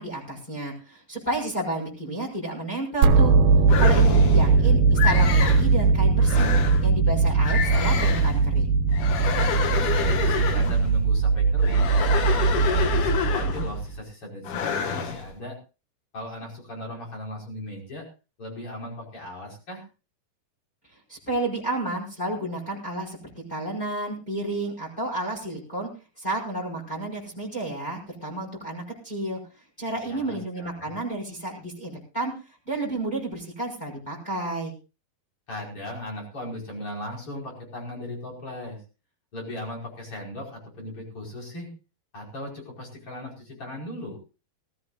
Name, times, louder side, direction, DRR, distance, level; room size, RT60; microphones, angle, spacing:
voice 1, 0.0-3.3 3.8-6.5 6.8-8.7 21.1-23.2 23.5-25.9 26.2-29.4 29.8-32.3 32.7-34.7, right 2 dB, 10° left, -1 dB, 5.2 m, -31 dB
sound 1, 3.0-14.0, right 4 dB, 80° right, 2.9 m, -20 dB
sound 2, 3.7-4.5 5.0-5.7 6.2-6.9 7.4-8.4 8.9-10.9 11.6-13.8 14.4-15.2, left 7 dB, 65° left, 2.9 m, -28 dB
voice 2, 4.1-4.7 9.7-11.9 12.3-15.6 16.1-18.1 18.4-19.8 30.1-30.9 35.5-38.8 39.3-41.7 42.1-44.2, left 1 dB, 35° left, -1 dB, 6.0 m, -37 dB
19.5 x 16.0 x 2.5 m, 0.32 s
omnidirectional pair, 4.2 m